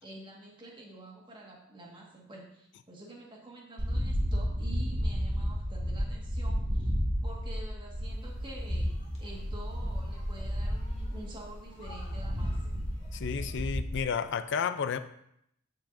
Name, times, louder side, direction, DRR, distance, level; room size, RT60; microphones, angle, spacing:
voice 1, 0.0-6.9 7.2-12.8, right 1 dB, 25° right, -2 dB, 1.5 m, -48 dB
sound 1, 3.8-14.0, equal, 40° right, 1.7 m, -32 dB
sound 2, 8.0-13.6, equal, 30° left, 2.0 m, -46 dB
voice 2, 13.1-15.0, left 6 dB, 60° left, 12 dB, 0.4 m, -31 dB
13.0 x 4.7 x 2.6 m, 0.75 s
head